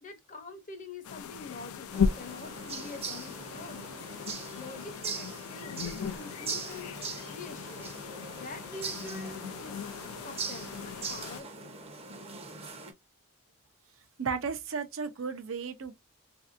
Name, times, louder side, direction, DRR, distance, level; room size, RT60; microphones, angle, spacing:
voice 1, 0.0-3.9 4.6-7.0 7.3-7.9 8.3-9.8 10.2-11.8, left 3 dB, 35° left, 0.7 m, -45 dB
sound 1, 1.0-11.4, left 6 dB, 75° left, 0.4 m, -37 dB
sound 2, 1.9-12.9, right 4 dB, 25° right, 0.7 m, -41 dB
voice 2, 14.2-15.9, right 5 dB, 65° right, 0.6 m, -34 dB
3.3 x 2.6 x 2.5 m
head